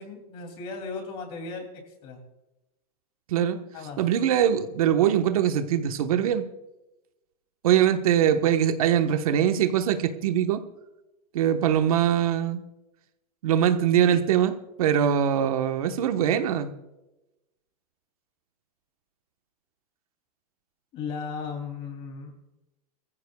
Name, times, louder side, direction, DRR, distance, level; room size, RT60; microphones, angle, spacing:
voice 1, 0.0-2.2 3.7-4.0 20.9-22.3, left 5 dB, 25° left, 4 dB, 2.8 m, -36 dB
voice 2, 4.0-6.5 7.6-10.6 11.3-12.6 13.4-16.7, right 9 dB, 65° right, 7 dB, 1.2 m, -22 dB
21.5 x 15.0 x 2.3 m, 0.96 s
supercardioid pair, 175°, 20 cm